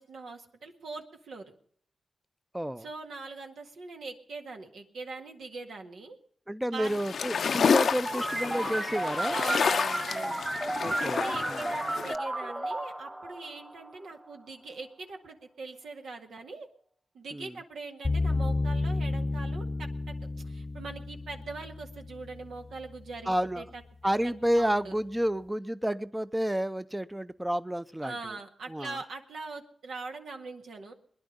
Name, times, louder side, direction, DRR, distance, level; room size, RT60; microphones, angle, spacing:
voice 1, 0.0-1.5 2.8-6.2 6.7-7.0 9.3-10.4 11.0-16.7 17.1-19.9 20.4-23.8 24.5-25.0 28.0-30.9, right 3 dB, 85° right, 1.9 m, -42 dB
voice 2, 2.5-2.9 6.5-9.4 10.8-11.6 17.3-17.5 23.3-23.6 24.0-28.2 28.7-29.0, equal, 10° right, 0.6 m, -30 dB
sound 1, 6.8-12.2, left 6 dB, 75° left, 0.6 m, -29 dB
sound 2, 8.1-14.3, right 1 dB, 30° right, 2.4 m, -33 dB
sound 3, 18.0-23.2, left 2 dB, 25° left, 0.8 m, -32 dB
21.5 x 10.5 x 5.3 m
cardioid pair, 55°, 0 cm